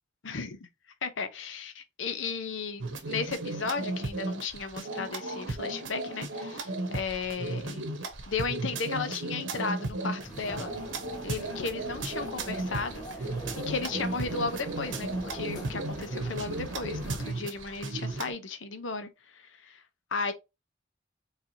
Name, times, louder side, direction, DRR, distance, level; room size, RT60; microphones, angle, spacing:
voice 1, 0.2-0.6 1.0-7.9 8.3-10.7 11.2-13.3 13.6-19.8 20.1-20.3, left 4 dB, 90° left, 0.8 m, -35 dB
sound 1, 2.8-18.3, right 2 dB, 90° right, 1.1 m, -35 dB
sound 2, 10.2-17.3, right 1 dB, 20° left, 1.3 m, -43 dB
4.8 x 3.3 x 2.7 m
head